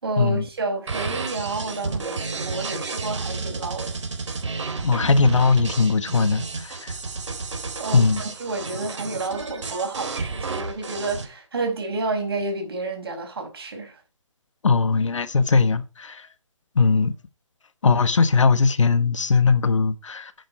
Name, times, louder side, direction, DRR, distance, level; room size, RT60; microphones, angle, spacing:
voice 1, 0.0-3.9 7.8-14.0, right 3 dB, 50° right, 5.5 m, -30 dB
sound 1, 0.9-11.2, right 4 dB, 65° right, 4.0 m, -31 dB
voice 2, 4.8-6.9 7.9-8.2 14.6-16.3 16.7-17.1 17.8-20.5, left 4 dB, 70° left, 1.3 m, -20 dB
9.6 x 9.0 x 4.6 m
hypercardioid pair, 175°, 16 cm